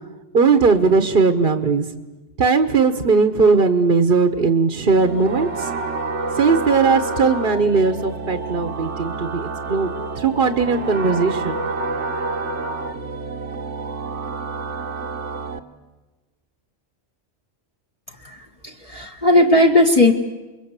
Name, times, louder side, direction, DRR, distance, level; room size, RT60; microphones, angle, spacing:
voice 1, 0.3-1.8 2.4-5.7 6.4-9.9 10.2-11.6, right 4 dB, 50° right, 8 dB, 1.3 m, -18 dB
sound 1, 4.9-15.6, right 3 dB, 75° right, 1.6 m, -28 dB
voice 2, 18.2-20.1, left 1 dB, 30° left, 0 dB, 1.6 m, -16 dB
28.5 x 22.5 x 8.2 m, 1.1 s
omnidirectional pair, 1.2 m